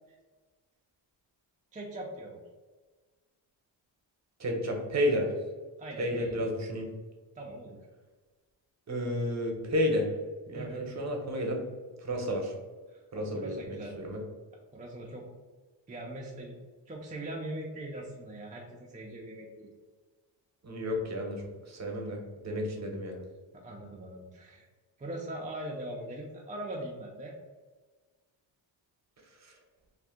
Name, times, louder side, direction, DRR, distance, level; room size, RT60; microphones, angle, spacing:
voice 1, 1.7-2.4 5.8-6.4 7.4-7.8 10.5-10.8 12.9-14.0 14.7-15.3 15.9-16.5 16.9-19.7 23.5-24.7 25.0-27.3, right 1 dB, 20° right, -2 dB, 0.4 m, -41 dB
voice 2, 4.4-5.3 6.0-6.9 8.9-10.1 10.5-11.6 12.0-12.5 13.1-14.2 20.6-23.2 29.4-29.5, equal, 35° right, 1 dB, 0.8 m, -31 dB
2.5 x 2.3 x 3.6 m, 1.4 s
cardioid pair, 85°, 46 cm